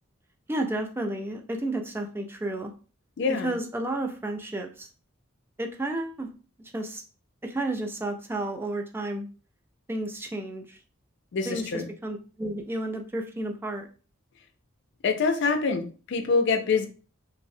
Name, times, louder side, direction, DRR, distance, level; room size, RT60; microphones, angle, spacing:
voice 1, 0.5-2.7 3.3-4.9 5.6-6.3 6.7-7.0 7.4-9.3 9.9-10.8 11.5-13.9, right 1 dB, 10° right, 0.3 m, -32 dB
voice 2, 3.2-3.5 11.3-11.9 15.0-16.9, left 4 dB, 60° left, 0.4 m, -25 dB
3.1 x 2.0 x 2.6 m
head